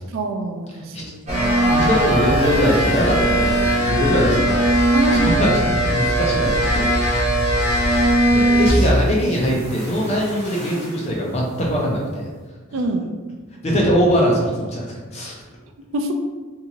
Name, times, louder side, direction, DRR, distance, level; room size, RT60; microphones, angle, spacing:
voice 1, 0.1-1.7 4.9-5.4 12.7-13.1 15.9-16.1, right 2 dB, 70° right, 5 dB, 0.3 m, -25 dB
sound 1, 1.3-9.2 9.4-11.0, right 1 dB, 30° right, 0.8 m, -19 dB
voice 2, 1.4-4.6 5.1-5.5 5.9-6.9 7.9-12.3 13.6-14.9 15.1-15.3, equal, 30° left, -3 dB, 0.5 m, -21 dB
2.7 x 2.4 x 2.8 m, 1.4 s
head